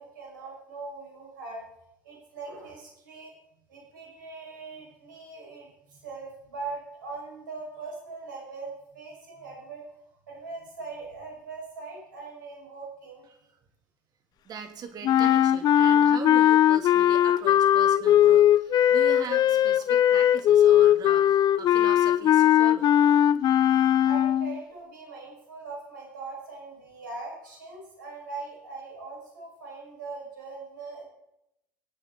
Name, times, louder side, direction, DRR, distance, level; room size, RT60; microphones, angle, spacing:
voice 1, 0.0-1.6 2.0-3.3 3.7-9.8 10.3-13.2 24.0-31.1, right 3 dB, 80° right, -1 dB, 5.6 m, -41 dB
voice 2, 14.4-22.9, right 7 dB, 40° right, 6 dB, 2.7 m, -40 dB
sound 1, 15.0-24.6, left 11 dB, 40° left, 0.5 m, -20 dB
24.5 x 8.8 x 4.0 m, 0.81 s
hypercardioid pair, 80°, 10 cm